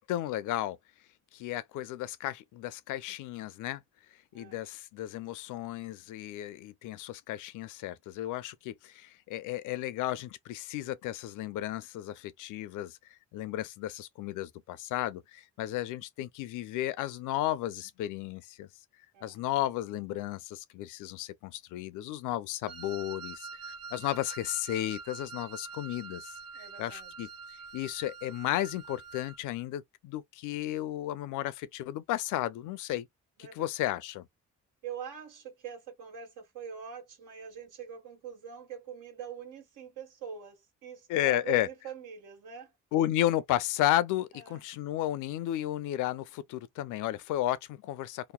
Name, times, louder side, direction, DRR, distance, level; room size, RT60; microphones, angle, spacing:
voice 1, 0.1-0.8 1.3-3.8 4.3-13.0 13.3-18.7 19.2-27.3 27.7-33.1 33.6-34.3 41.1-41.7 42.9-48.3, left 13 dB, 85° left, 0.5 m, -33 dB
voice 2, 19.1-19.5 26.5-27.1 33.4-34.0 34.8-42.7 44.3-44.6, right 7 dB, 90° right, 1.5 m, -44 dB
Wind instrument woodwind instrument, 22.7-29.4, right 4 dB, 55° right, 0.6 m, -45 dB
2.9 x 2.0 x 2.2 m
cardioid pair, 90°, 30 cm